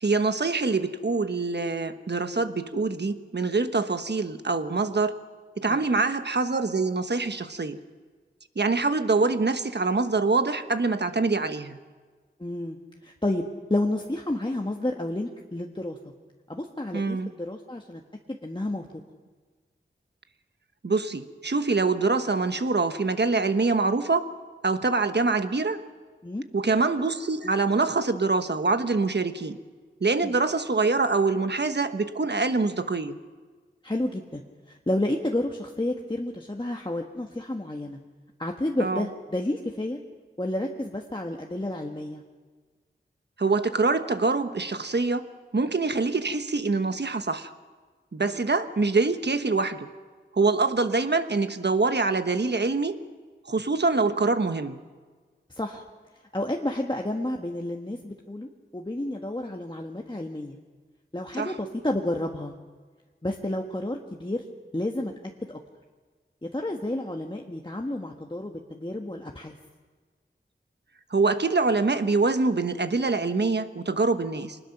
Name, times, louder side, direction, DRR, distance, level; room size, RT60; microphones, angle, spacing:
voice 1, 0.0-5.2 5.6-7.8 8.5-11.8 16.9-17.3 20.8-24.3 24.6-25.8 26.5-29.6 30.0-33.2 38.8-39.1 43.4-45.2 45.5-47.5 48.1-49.9 50.3-53.0 53.5-54.8 61.4-61.5 71.1-74.6, right 3 dB, 60° right, 9 dB, 1.2 m, -25 dB
voice 2, 12.4-16.0 16.5-18.0 18.3-18.9 26.2-26.4 30.2-30.3 33.8-34.4 34.7-38.0 38.4-40.0 40.4-42.2 48.2-48.4 55.5-55.8 56.3-60.6 61.1-62.5 63.2-64.4 64.7-65.1 65.5-65.6 66.5-69.6, left 1 dB, 25° left, 1 dB, 1.5 m, -30 dB
25.5 x 20.0 x 5.9 m, 1.4 s
wide cardioid pair, 55°, 20 cm